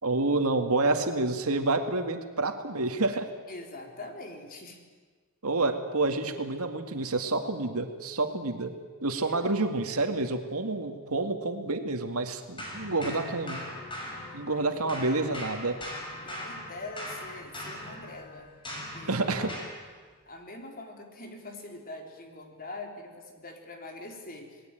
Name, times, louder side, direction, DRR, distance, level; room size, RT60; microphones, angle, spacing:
voice 1, 0.0-3.3 5.4-8.7 9.0-13.6 14.3-15.8 19.1-19.5, right 2 dB, 80° right, 6 dB, 2.2 m, -28 dB
voice 2, 3.5-4.9 9.2-9.5 14.5-15.4 16.2-18.5 18.9-19.4 20.2-24.6, left 2 dB, 40° left, 3 dB, 4.0 m, -44 dB
sound 1, 12.6-14.6 14.9-19.8, left 1 dB, 25° left, 6.4 m, -40 dB
28.0 x 19.5 x 9.2 m, 1.5 s
head